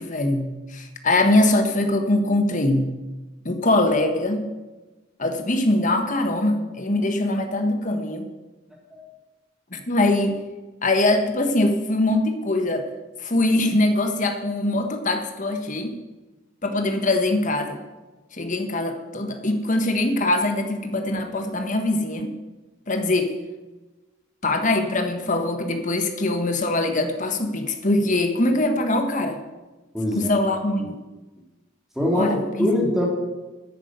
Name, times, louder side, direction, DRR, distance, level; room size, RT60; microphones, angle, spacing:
voice 1, 0.0-2.9 3.4-4.5 5.2-8.3 9.7-10.4 10.8-12.9 13.2-15.9 16.6-17.8 18.3-22.3 22.9-23.3 24.4-29.4 30.1-31.0 32.1-32.7, left 2 dB, 40° left, 6 dB, 1.5 m, -22 dB
voice 2, 29.9-30.4 30.8-30.9 32.0-33.0, left 1 dB, ahead, -3 dB, 3.3 m, -23 dB
10.5 x 9.8 x 8.1 m, 1.2 s
head